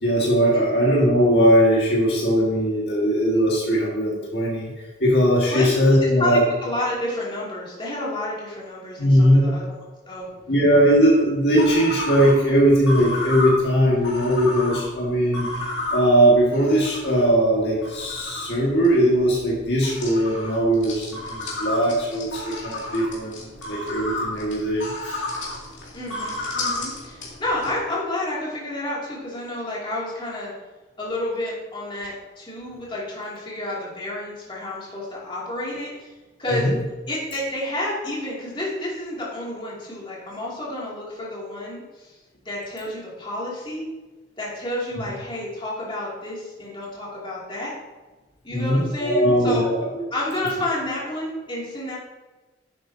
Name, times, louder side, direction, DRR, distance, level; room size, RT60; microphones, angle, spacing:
voice 1, 0.0-4.7 5.0-6.4 9.0-9.5 10.5-15.5 15.9-25.2 36.5-36.7 48.5-50.0, equal, 60° left, -4 dB, 1.9 m, -19 dB
voice 2, 6.2-10.3 25.9-30.5 31.0-36.1 36.4-36.7 37.1-42.2 42.4-43.8 44.4-47.7 48.4-49.7 50.1-52.0, left 1 dB, 25° left, -6 dB, 2.6 m, -30 dB
sound 1, 11.5-27.7, left 2 dB, 85° left, 2.6 m, -32 dB
10.5 x 7.7 x 2.8 m, 1.2 s
head